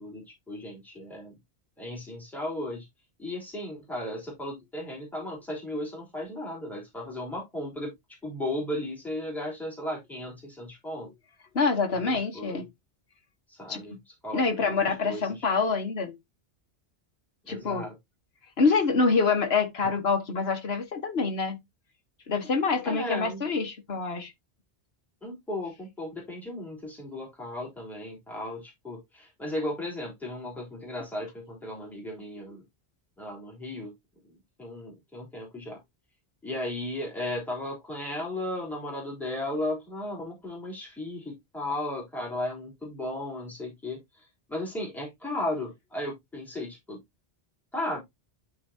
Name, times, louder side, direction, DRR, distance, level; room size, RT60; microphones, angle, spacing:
voice 1, 0.0-1.3 1.8-2.8 3.2-7.9 8.2-11.1 12.0-12.6 13.5-13.9 14.2-14.7 15.0-15.2 17.5-17.9 22.8-23.5 25.2-32.6 33.2-33.9 34.6-35.8 36.4-44.0 44.5-47.0 47.7-48.0, left 1 dB, ahead, 3.4 m, -35 dB
voice 2, 11.5-12.7 13.7-13.8 14.3-16.2 17.5-17.9 18.6-21.6 22.3-24.3, left 4 dB, 65° left, 1.7 m, -26 dB
12.0 x 4.1 x 2.8 m
omnidirectional pair, 1.1 m